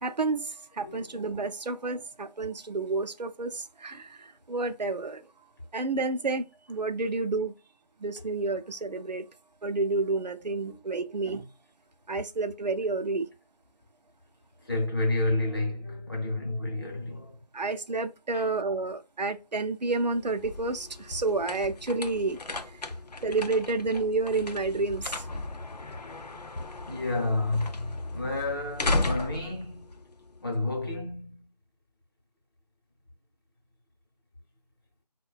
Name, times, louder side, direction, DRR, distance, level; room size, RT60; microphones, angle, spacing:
voice 1, 0.0-5.2 5.7-7.5 8.0-9.3 9.6-11.5 12.1-13.3 17.5-22.4 23.2-25.3, right 3 dB, 85° right, 0.5 m, -30 dB
voice 2, 0.8-1.2 10.6-10.8 14.6-17.4 18.3-18.5 26.9-29.9 30.4-31.5, left 2 dB, 35° left, 0.8 m, -30 dB
sound 1, 20.1-30.8, left 2 dB, 70° left, 0.5 m, -35 dB
4.7 x 2.1 x 2.3 m
figure-of-eight pair, 165°, 21 cm